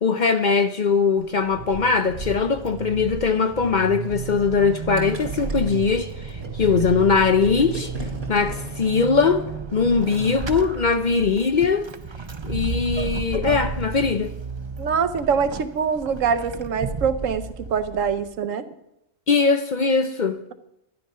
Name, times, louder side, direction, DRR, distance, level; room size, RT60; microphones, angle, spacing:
voice 1, 0.0-7.9 8.3-11.9 12.4-14.3 19.3-20.4, left 5 dB, 45° left, 0.7 m, -21 dB
Vehicle / Accelerating revving vroom / Squeak, 1.2-18.4, right 4 dB, 35° right, 0.4 m, -33 dB
Gurgling, 5.0-9.6, right 1 dB, 50° right, 2.8 m, -36 dB
voice 2, 14.8-18.6, right 6 dB, 85° right, 1.2 m, -24 dB
12.5 x 10.5 x 5.5 m
omnidirectional pair, 1.3 m